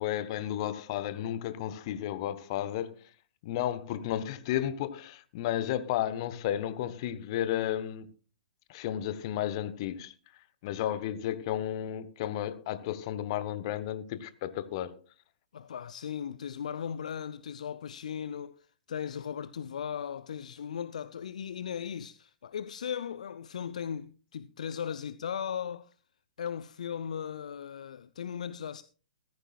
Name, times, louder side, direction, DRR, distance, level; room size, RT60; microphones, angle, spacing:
voice 1, 0.0-3.1 3.4-8.1 8.7-10.1 10.6-15.0, left 11 dB, 40° left, 0.9 m, -33 dB
voice 2, 15.5-25.9 26.4-28.8, left 8 dB, 55° left, 0.4 m, -37 dB
14.5 x 14.0 x 2.3 m
figure-of-eight pair, 115°, 4 cm